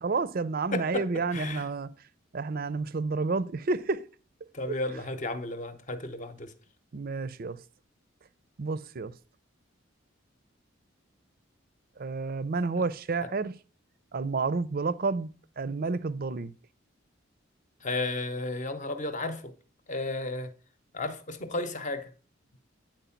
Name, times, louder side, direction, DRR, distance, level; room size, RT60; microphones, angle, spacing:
voice 1, 0.0-1.9 2.3-4.1 6.9-7.6 8.6-9.1 12.0-13.5 14.1-15.3 15.6-16.5, right 4 dB, 45° right, 0.5 m, -30 dB
voice 2, 0.7-1.7 4.5-6.5 13.2-13.3 17.8-19.5 19.9-20.5 20.9-22.1, left 2 dB, 40° left, 0.8 m, -33 dB
9.2 x 4.5 x 5.7 m
head